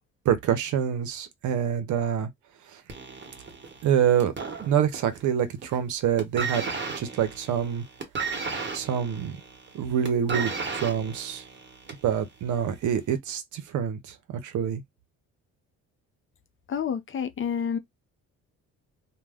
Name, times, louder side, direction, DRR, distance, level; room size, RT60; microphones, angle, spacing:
voice 1, 0.2-2.3 2.7-2.8 3.8-4.3 4.6-6.6 7.0-7.8 8.7-9.4 9.7-11.4 12.0-14.8, right 9 dB, 75° right, 0.7 m, -26 dB
sound 1, 2.9-5.2 5.5-5.9 6.2-12.1 13.0-13.1, right 4 dB, 35° right, 1.1 m, -34 dB
voice 2, 16.7-17.8, left 7 dB, 40° left, 0.6 m, -29 dB
2.2 x 2.1 x 3.4 m
cardioid pair, 90°, 30 cm